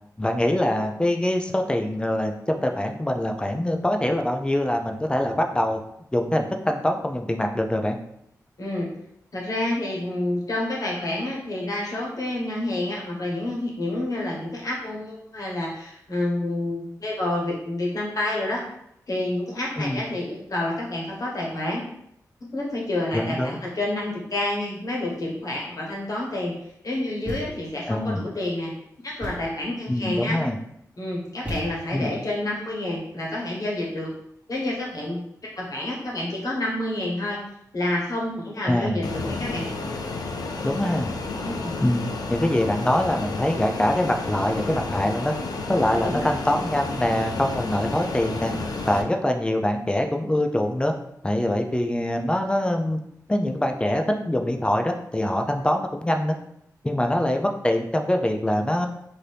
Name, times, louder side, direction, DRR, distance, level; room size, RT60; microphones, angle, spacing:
voice 1, 0.2-5.8 6.1-8.0 19.8-20.0 23.1-23.6 27.9-28.3 29.9-30.6 31.9-32.1 38.7-39.1 40.6-41.1 41.8-45.3 45.7-48.5 48.9-50.9 51.2-53.0 53.3-56.4 56.8-58.9, left 1 dB, 15° left, 4 dB, 0.4 m, -24 dB
voice 2, 8.6-8.9 9.3-18.6 19.1-21.8 22.5-26.5 26.8-28.7 29.0-30.4 31.0-34.1 34.5-35.2 35.6-37.4 37.7-39.7 41.4-41.7 45.8-46.3, left 1 dB, 60° left, -3 dB, 1.1 m, -28 dB
Thump thud, 27.2-27.8 29.2-29.7 31.4-32.1, right 1 dB, 20° right, 1.3 m, -35 dB
Fixed-wing aircraft airplane, 39.0-49.0, left 3 dB, 75° left, 0.4 m, -31 dB
2.7 x 2.6 x 3.3 m, 0.75 s
cardioid pair, 60°, 7 cm